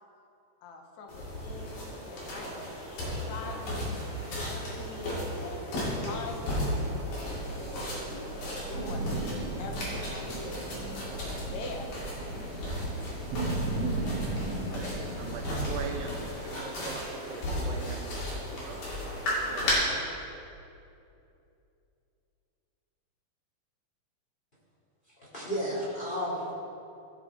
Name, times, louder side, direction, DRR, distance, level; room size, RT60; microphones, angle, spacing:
voice 1, 0.6-6.9 7.5-10.6 11.2-11.9, left 3 dB, 80° left, 2 dB, 1.6 m, -44 dB
sound 1, 1.1-19.7, left 1 dB, 55° left, 3.5 m, -35 dB
Thunder / Rain, 6.6-16.3, right 2 dB, 35° right, 2.4 m, -36 dB
voice 2, 14.8-18.8 19.3-20.1, right 5 dB, 80° right, 2 dB, 2.3 m, -42 dB
voice 3, 25.2-26.5, equal, 15° left, -8 dB, 1.8 m, -32 dB
16.5 x 5.7 x 3.5 m, 2.7 s
omnidirectional pair, 4.5 m